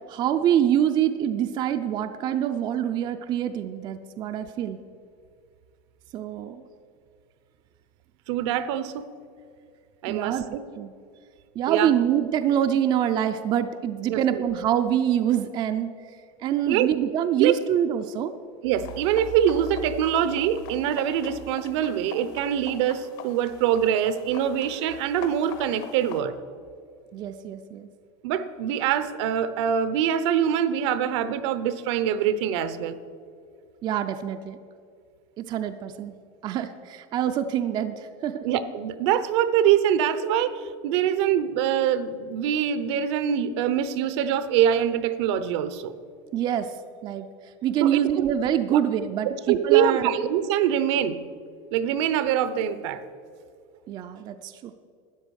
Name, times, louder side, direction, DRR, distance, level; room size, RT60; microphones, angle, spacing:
voice 1, 0.1-4.8 6.1-6.7 10.1-10.4 10.8-10.9 11.6-15.9 16.4-18.3 27.1-27.9 33.8-34.6 35.4-36.1 36.4-38.4 46.3-46.7 47.0-47.3 47.6-50.1 53.9-54.7, right 10 dB, 30° right, 8 dB, 0.4 m, -25 dB
voice 2, 8.3-9.1 10.0-10.6 11.7-11.9 14.1-14.4 16.7-16.9 17.4-17.6 18.6-26.4 28.2-32.9 38.4-45.9 47.8-48.3 48.7-48.8 49.3-51.2 51.7-53.0, right 9 dB, 70° right, 13 dB, 0.8 m, -24 dB
sound 1, 18.8-26.2, left 7 dB, 55° left, 1.3 m, -44 dB
12.5 x 9.4 x 6.4 m, 2.3 s
supercardioid pair, 160°, 15 cm